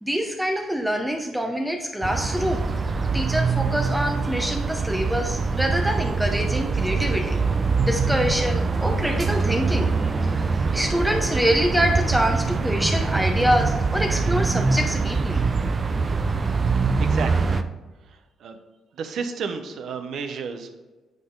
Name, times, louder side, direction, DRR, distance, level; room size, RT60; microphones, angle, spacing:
voice 1, 0.0-2.7 3.1-7.4 7.8-10.4 10.7-15.4, equal, 5° right, 2 dB, 0.8 m, -25 dB
sound 1, 2.0-17.6, right 4 dB, 35° right, 0.5 m, -24 dB
voice 2, 17.0-17.6 18.4-18.6 19.0-20.7, right 5 dB, 70° right, 7 dB, 0.8 m, -31 dB
9.1 x 3.8 x 3.8 m, 1.2 s
cardioid pair, 90°, 0 cm